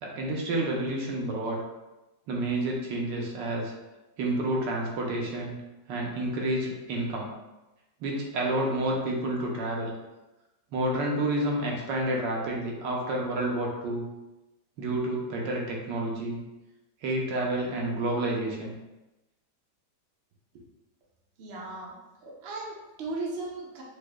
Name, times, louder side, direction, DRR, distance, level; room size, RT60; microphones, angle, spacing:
voice 1, 0.0-1.6 2.3-3.7 4.2-5.5 5.9-7.3 8.0-9.9 10.7-14.0 14.8-16.4 17.0-18.7, right 1 dB, 80° right, -1 dB, 1.3 m, -29 dB
voice 2, 21.4-21.9 22.2-23.8, right 2 dB, 60° right, -3 dB, 0.6 m, -36 dB
4.9 x 2.1 x 2.2 m, 1.0 s
omnidirectional pair, 1.9 m